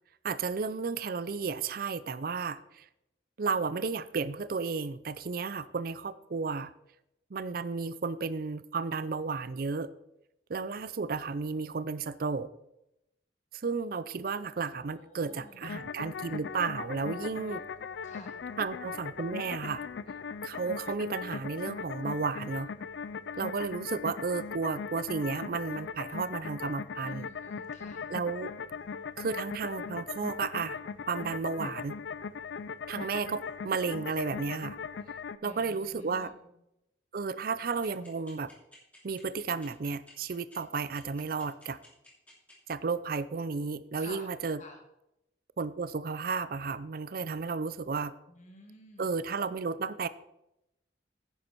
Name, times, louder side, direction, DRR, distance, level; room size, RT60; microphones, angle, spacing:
voice 1, 0.2-2.8 3.4-6.7 7.3-9.9 10.5-12.5 13.6-17.6 18.6-19.8 20.4-22.7 23.4-27.3 28.1-28.5 29.2-30.8 31.1-32.0 32.9-34.8 35.4-36.3 37.1-38.5 39.0-41.8 42.7-44.6 45.6-48.1 49.0-50.1, right 4 dB, 50° right, 15 dB, 0.5 m, -33 dB
voice 2, 14.9-15.7 17.3-17.4 18.0-18.4 27.0-28.1 28.7-28.8 35.4-36.3 44.0-44.8 48.3-49.1, left 1 dB, 40° left, 3 dB, 2.0 m, -51 dB
sound 1, 15.6-35.4, left 6 dB, 70° left, 0.4 m, -39 dB
sound 2, 37.8-42.5, left 2 dB, 10° left, 3.1 m, -55 dB
10.5 x 9.6 x 4.5 m, 0.85 s
head